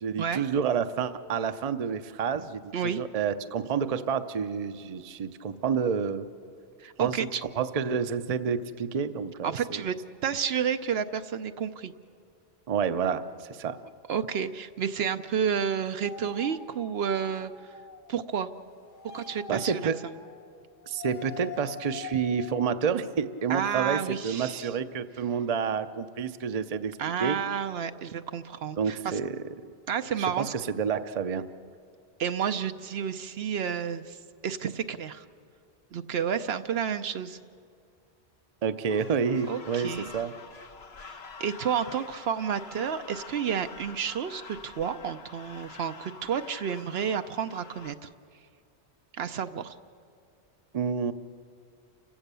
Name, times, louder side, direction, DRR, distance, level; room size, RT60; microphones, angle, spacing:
voice 1, 0.0-6.3 7.0-9.8 12.7-13.8 19.5-20.0 20.9-27.4 28.8-29.7 30.2-31.5 38.6-40.3 50.7-51.1, right 6 dB, 40° right, 10 dB, 0.7 m, -29 dB
voice 2, 6.8-7.4 9.4-9.9 10.2-11.9 14.1-17.5 18.1-18.5 19.1-19.9 23.5-24.7 27.0-29.2 29.9-30.5 32.2-34.2 34.4-35.2 35.9-37.4 39.5-40.1 41.4-48.1 49.1-49.8, right 7 dB, 70° right, 9 dB, 0.9 m, -30 dB
sound 1, 16.0-22.7, left 6 dB, 55° left, 0.8 m, -45 dB
sound 2, 38.9-47.9, left 4 dB, 75° left, 1.4 m, -46 dB
29.0 x 16.0 x 6.9 m, 2.3 s
omnidirectional pair, 1.1 m